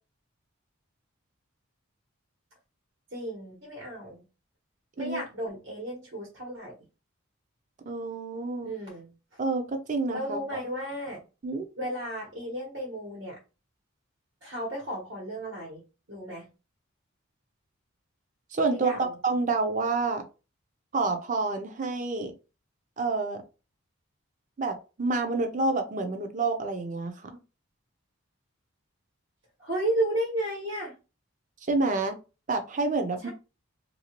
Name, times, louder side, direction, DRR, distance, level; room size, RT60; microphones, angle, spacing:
voice 1, 3.1-4.2 5.0-6.7 8.6-9.4 10.1-11.2 11.8-13.4 14.4-15.8 16.1-16.5 18.7-19.2 29.6-30.9 33.2-33.3, right 1 dB, 65° right, -2 dB, 1.3 m, -33 dB
voice 2, 7.8-8.7 9.4-10.6 11.4-11.7 18.5-20.2 20.9-22.3 23.0-23.4 24.6-27.3 31.6-32.2 32.5-33.3, right 3 dB, 35° right, 5 dB, 0.5 m, -28 dB
2.9 x 2.6 x 2.9 m, 0.30 s
head